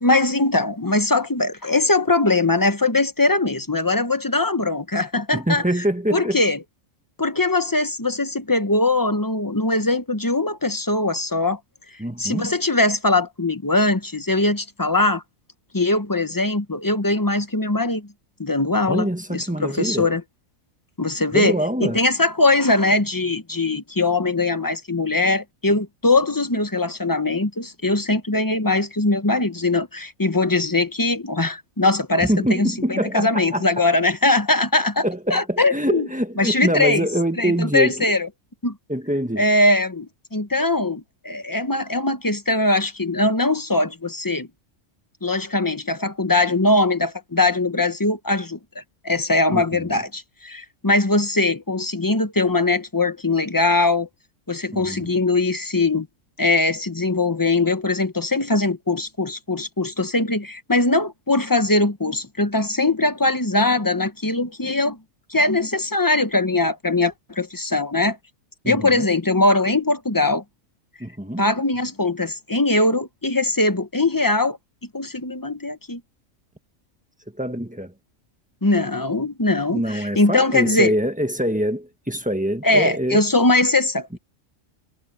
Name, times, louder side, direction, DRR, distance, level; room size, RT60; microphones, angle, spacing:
voice 1, 0.0-5.6 6.1-6.6 7.2-11.6 12.2-15.2 15.7-18.1 18.4-20.2 21.0-35.0 35.3-36.1 36.4-37.1 37.4-38.3 38.6-38.7 39.4-44.5 45.2-54.1 54.5-56.1 56.4-65.0 65.3-68.2 68.6-70.4 71.4-74.6 74.9-76.0 78.6-80.9 82.6-84.2, left 2 dB, 15° left, 0.9 m, -21 dB
voice 2, 5.3-6.4 12.0-12.5 18.9-20.1 21.3-22.0 32.2-33.7 35.0-38.1 38.9-39.4 49.5-50.0 54.7-55.1 68.6-69.1 71.0-71.4 77.4-77.9 79.7-83.2, equal, 5° right, 1.4 m, -24 dB
omnidirectional pair, 1.4 m